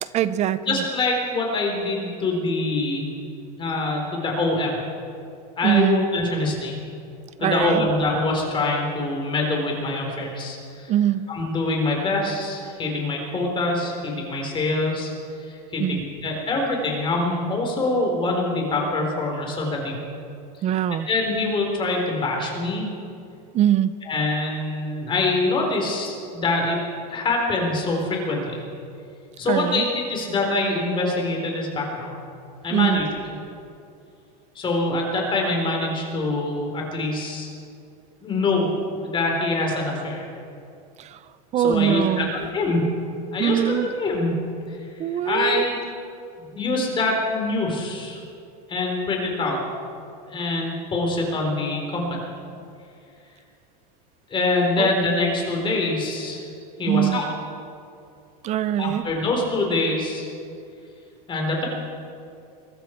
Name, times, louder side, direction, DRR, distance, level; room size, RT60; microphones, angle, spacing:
voice 1, 0.0-0.8 5.6-6.0 7.4-7.9 10.9-11.2 15.8-16.0 20.6-21.1 23.5-23.9 29.5-29.8 32.7-33.0 41.0-41.2 41.5-42.3 43.4-43.9 45.0-45.6 54.8-54.9 56.9-57.2 58.4-59.0, right 11 dB, 35° right, 15 dB, 0.6 m, -22 dB
voice 2, 0.7-3.1 3.6-4.8 5.6-6.7 7.4-10.9 11.3-15.1 15.4-20.0 21.1-22.9 24.1-26.8 27.1-28.6 29.4-32.1 32.6-33.1 34.6-37.5 38.2-38.7 39.0-40.3 41.6-42.9 43.3-44.4 44.7-45.8 46.5-48.2 48.7-49.6 50.3-52.2 54.3-56.5 56.8-57.3 58.8-60.3 61.3-61.7, left 2 dB, 25° left, 0 dB, 4.0 m, -24 dB
22.5 x 13.5 x 4.6 m, 2.5 s
supercardioid pair, 135°, 21 cm